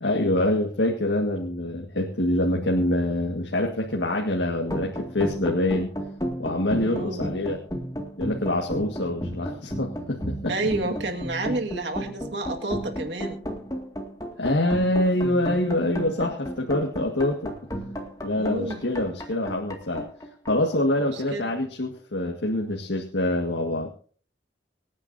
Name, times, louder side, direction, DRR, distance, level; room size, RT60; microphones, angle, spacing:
voice 1, 0.0-5.9 6.4-7.6 8.2-10.5 14.4-17.5 18.2-20.0 20.5-23.9, left 1 dB, 90° left, 1 dB, 1.8 m, -25 dB
sound 1, 4.6-21.5, equal, 20° left, 2.1 m, -33 dB
voice 2, 6.8-7.2 10.5-13.4 18.3-18.8 21.0-21.5, right 2 dB, 85° right, 3 dB, 1.8 m, -30 dB
25.5 x 9.7 x 2.7 m, 0.43 s
head